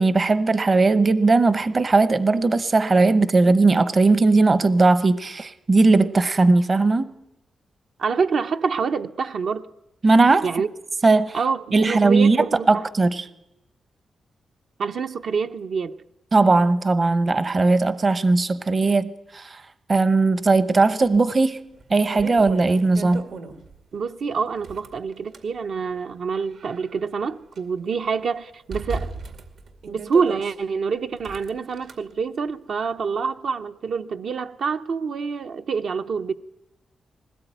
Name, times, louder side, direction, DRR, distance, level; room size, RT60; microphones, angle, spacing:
voice 1, 0.0-7.1 10.0-10.5 11.0-11.4 11.7-13.2 16.3-19.6 19.9-21.6 21.9-23.2, right 3 dB, 30° right, 0.8 m, -18 dB
voice 2, 8.0-9.7 10.4-10.7 11.3-12.8 14.8-15.9 23.9-29.1 29.9-36.3, right 5 dB, 60° right, 0.7 m, -26 dB
sound 1, 21.1-21.2 21.7-23.8 24.5-25.5 26.2-27.6 27.9-28.0 28.7-30.5 31.2-31.9, right 4 dB, 80° right, 2.3 m, -36 dB
21.0 x 18.0 x 9.1 m
wide cardioid pair, 165°, 0 cm